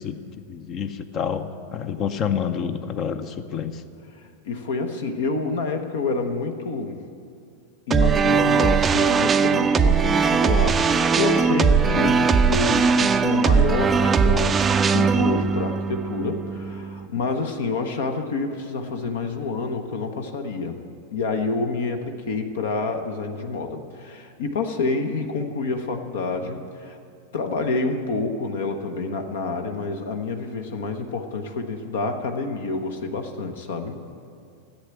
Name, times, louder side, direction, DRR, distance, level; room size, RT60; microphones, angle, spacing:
voice 1, 0.0-3.8, left 7 dB, 35° left, 11 dB, 0.7 m, -28 dB
voice 2, 4.1-7.0 7.9-20.8 21.1-27.0 27.3-34.1, left 3 dB, 60° left, 6 dB, 1.0 m, -28 dB
sound 1, 7.9-17.1, right 5 dB, 20° right, 0.5 m, -20 dB
14.5 x 8.5 x 9.0 m, 2.4 s
figure-of-eight pair, 90°, 0 cm